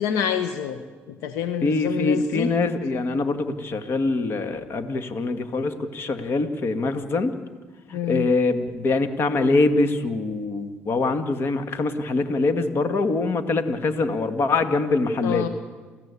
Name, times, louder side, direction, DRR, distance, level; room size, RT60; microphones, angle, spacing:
voice 1, 0.0-2.5 7.9-8.3 15.2-15.5, left 8 dB, 85° left, 9 dB, 1.3 m, -27 dB
voice 2, 1.6-7.3 7.9-15.5, left 3 dB, 55° left, 8 dB, 2.1 m, -24 dB
29.0 x 15.0 x 8.5 m, 1.4 s
cardioid pair, 85°, 5 cm